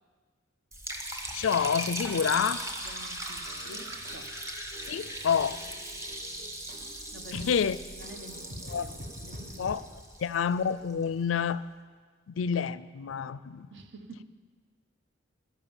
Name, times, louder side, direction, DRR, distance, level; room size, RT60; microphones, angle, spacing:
Liquid, 0.7-10.9, right 1 dB, 15° right, 1.2 m, -39 dB
voice 1, 1.3-2.6 4.9-5.6 7.3-7.8 8.7-8.8 9.6-9.8 10.2-11.6 12.3-13.7, left 7 dB, 80° left, 17 dB, 0.4 m, -28 dB
voice 2, 2.8-4.3 6.9-7.5 8.0-9.7 13.7-14.2, right 1 dB, 65° right, 7 dB, 1.1 m, -49 dB
sound 1, 3.4-9.8, equal, 45° right, 1.3 m, -47 dB
11.0 x 11.0 x 7.2 m, 1.5 s
head